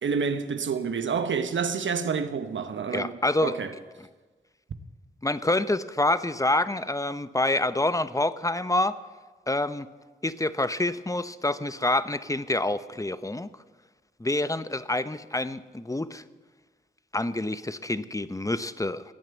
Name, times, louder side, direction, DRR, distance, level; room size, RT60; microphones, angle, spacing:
voice 1, 0.0-3.1 3.4-3.7, right 6 dB, 80° right, 1.1 m, -28 dB
voice 2, 2.9-3.6 5.2-9.0 9.5-9.9 10.2-13.5 14.2-16.2 17.1-19.0, left 2 dB, 15° left, 0.8 m, -27 dB
17.0 x 9.2 x 8.1 m
cardioid pair, 45°, 20 cm